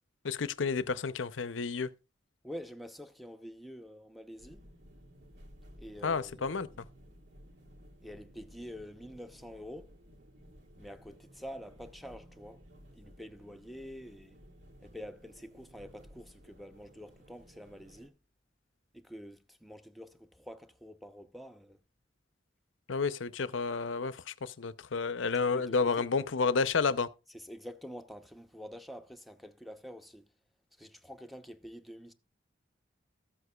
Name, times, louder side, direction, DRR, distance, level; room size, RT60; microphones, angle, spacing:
voice 1, 0.2-1.9 6.0-6.7 22.9-27.1, left 4 dB, 85° left, 0.6 m, -31 dB
voice 2, 2.4-4.6 5.8-6.8 8.0-10.0 10.8-12.6 12.9-14.4 14.8-18.2 18.9-21.8 25.5-26.3 27.3-30.2 30.8-32.1, equal, ahead, 0.7 m, -47 dB
sound 1, 4.4-18.1, equal, 65° right, 2.5 m, -56 dB
14.5 x 8.0 x 2.3 m
head